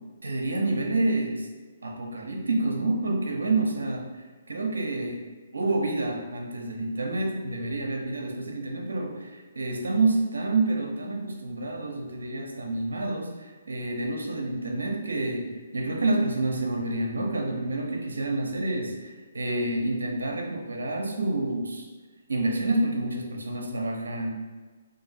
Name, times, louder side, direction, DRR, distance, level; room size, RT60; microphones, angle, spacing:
voice 1, 0.2-1.5 1.8-5.2 5.5-15.5 15.7-21.9 22.3-24.5, right 2 dB, 85° right, 1 dB, 0.7 m, -28 dB
2.8 x 2.6 x 4.1 m, 1.3 s
hypercardioid pair, 140°, 0 cm